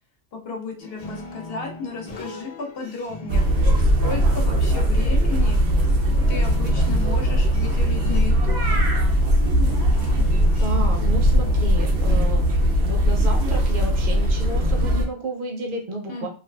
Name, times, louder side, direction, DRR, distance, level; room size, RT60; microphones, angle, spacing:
voice 1, 0.3-3.7 4.0-5.6 6.3-8.7 16.1-16.3, left 4 dB, 75° left, 2 dB, 0.8 m, -34 dB
sound 1, 0.8-11.9, left 2 dB, 45° left, 0.7 m, -39 dB
sound 2, 3.3-15.1, equal, 90° right, 0.9 m, -19 dB
voice 2, 10.6-12.5 12.8-16.3, right 2 dB, 60° right, 1 dB, 0.7 m, -31 dB
2.5 x 2.3 x 2.2 m, 0.40 s
omnidirectional pair, 1.0 m